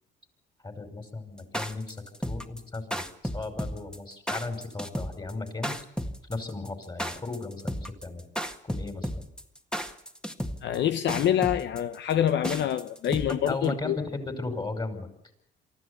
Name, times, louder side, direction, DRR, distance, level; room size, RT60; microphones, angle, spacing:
voice 1, 0.6-3.0 3.3-5.7 6.3-8.3 8.7-9.2 13.3-15.1, left 3 dB, 25° left, 5.5 m, -35 dB
sound 1, 1.4-13.6, equal, 5° left, 1.7 m, -33 dB
voice 2, 10.6-14.0, left 10 dB, 70° left, 0.8 m, -26 dB
24.0 x 14.5 x 8.3 m
cardioid pair, 75°, 19 cm